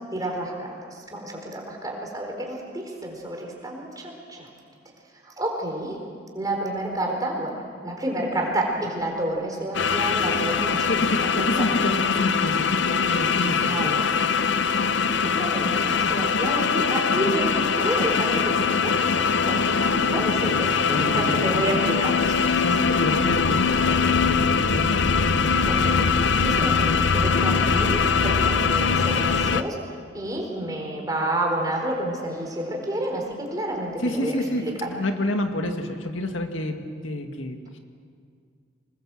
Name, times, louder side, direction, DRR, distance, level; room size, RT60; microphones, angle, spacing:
voice 1, 0.1-4.5 5.2-6.0 6.3-11.1 11.6-11.8 13.7-14.0 15.2-22.6 25.7-34.4 34.6-34.9, right 1 dB, 20° right, 0 dB, 4.4 m, -30 dB
sound 1, 9.7-29.6, left 5 dB, 65° left, 0.8 m, -22 dB
voice 2, 10.9-14.0 20.5-21.4 22.6-25.0 34.0-37.8, left 1 dB, 85° left, 5 dB, 2.0 m, -28 dB
26.0 x 20.5 x 7.7 m, 2.2 s
head